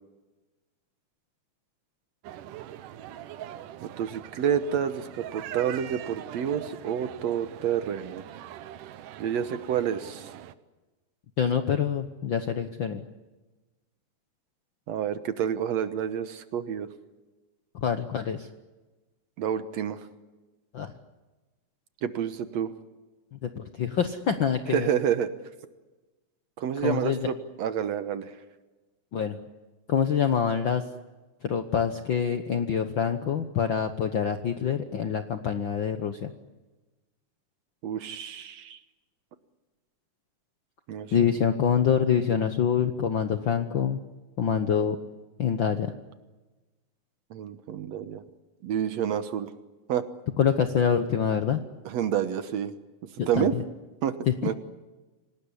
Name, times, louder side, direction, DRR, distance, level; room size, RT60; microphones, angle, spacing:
sound 1, 2.2-10.5, right 11 dB, 85° right, 2.5 m, -42 dB
voice 1, 3.8-8.2 9.2-10.3 14.9-16.9 19.4-20.0 22.0-22.7 24.7-25.3 26.6-28.3 37.8-38.8 40.9-41.1 47.3-48.2 48.6-49.5 49.9-50.1 51.9-52.8 53.3-53.5 54.0-54.2 54.4-54.5, right 9 dB, 65° right, 11 dB, 2.1 m, -29 dB
voice 2, 11.4-13.0 17.7-18.5 20.7-20.9 23.3-24.9 26.8-27.3 29.1-29.4 29.9-30.8 31.4-36.3 41.1-44.0 44.4-45.0 45.4-45.9 50.4-51.6 53.2-53.6 54.3-54.4, left 7 dB, 60° left, 8 dB, 1.2 m, -26 dB
26.5 x 19.0 x 9.8 m, 1.2 s
omnidirectional pair, 3.6 m